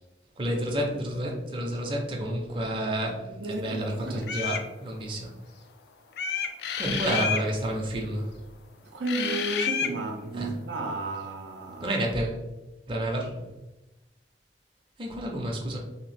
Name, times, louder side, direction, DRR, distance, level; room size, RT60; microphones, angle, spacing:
voice 1, 0.4-5.3 6.8-8.3 10.3-10.5 11.8-12.4 12.9-13.4 15.0-15.8, right 1 dB, 30° right, 0.5 m, -30 dB
voice 2, 3.0-4.4 8.8-11.9 13.4-13.5, right 2 dB, 85° right, 0.4 m, -33 dB
sound 1, 4.2-4.7 6.2-7.5 9.0-9.9, left 7 dB, 65° left, 0.3 m, -29 dB
2.8 x 2.4 x 3.2 m
head